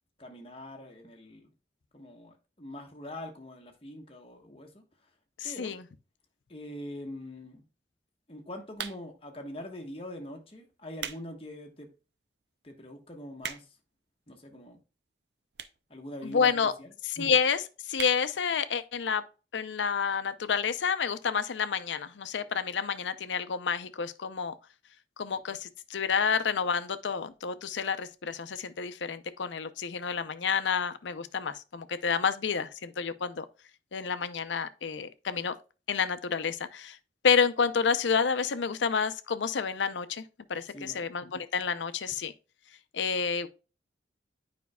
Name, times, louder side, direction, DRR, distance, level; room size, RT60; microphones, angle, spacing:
voice 1, 0.2-1.5 1.9-4.8 5.4-5.8 6.5-7.6 8.3-11.9 12.6-13.7 14.3-14.8 15.9-16.5 16.8-17.3 40.7-41.0, left 1 dB, 30° left, 1.2 m, -43 dB
voice 2, 5.4-5.8 16.2-16.7 17.0-19.2 19.5-24.5 25.2-33.5 33.9-35.5 35.9-37.0 37.2-40.2 40.5-42.3 42.9-43.5, left 6 dB, 90° left, 0.6 m, -29 dB
sound 1, 8.7-9.3 10.0-10.2 10.7-11.3 11.7-11.8 12.4-12.5 12.7-12.8 13.0-13.9 14.7-14.8 15.5-15.9 16.2-16.3 16.5-16.6 16.8-16.9 17.2-17.4 17.9-18.2 18.6-18.7 18.9-19.0, right 8 dB, 65° right, 0.5 m, -39 dB
9.3 x 5.2 x 2.2 m
head